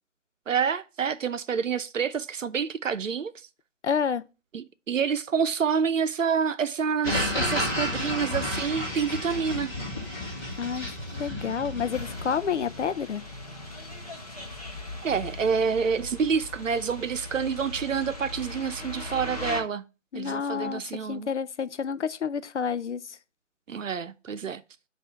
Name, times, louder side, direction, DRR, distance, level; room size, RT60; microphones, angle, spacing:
voice 1, 0.5-3.3 4.5-9.7 15.0-19.8 20.1-21.3 23.7-24.6, right 6 dB, 90° right, 0.7 m, -28 dB
voice 2, 3.8-4.2 10.6-13.2 20.1-20.8 21.1-23.2, left 6 dB, 65° left, 0.6 m, -29 dB
sound 1, 7.0-12.4, left 1 dB, 15° left, 1.3 m, -31 dB
sound 2, 11.9-19.6, left 2 dB, 30° left, 0.8 m, -39 dB
7.0 x 2.7 x 5.6 m
hypercardioid pair, 180°, 37 cm